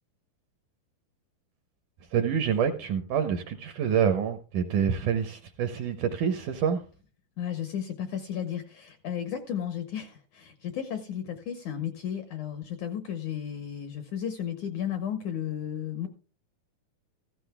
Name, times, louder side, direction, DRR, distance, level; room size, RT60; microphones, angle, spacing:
voice 1, 2.1-6.8, right 7 dB, 75° right, 8 dB, 1.9 m, -27 dB
voice 2, 7.4-16.1, left 9 dB, 75° left, 7 dB, 1.8 m, -34 dB
15.0 x 14.0 x 2.2 m, 0.36 s
omnidirectional pair, 4.5 m